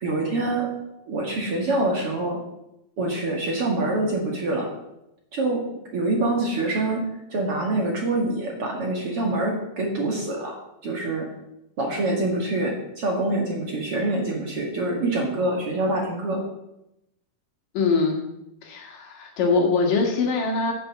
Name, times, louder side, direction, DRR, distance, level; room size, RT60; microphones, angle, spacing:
voice 1, 0.0-0.7 1.1-2.4 3.0-4.7 5.3-5.6 5.9-10.6 10.8-11.3 11.8-16.4, right 2 dB, 45° right, 0 dB, 2.4 m, -25 dB
voice 2, 17.7-18.2 18.6-20.7, left 4 dB, 65° left, 2 dB, 3.3 m, -22 dB
9.4 x 8.8 x 7.4 m, 0.86 s
omnidirectional pair, 4.2 m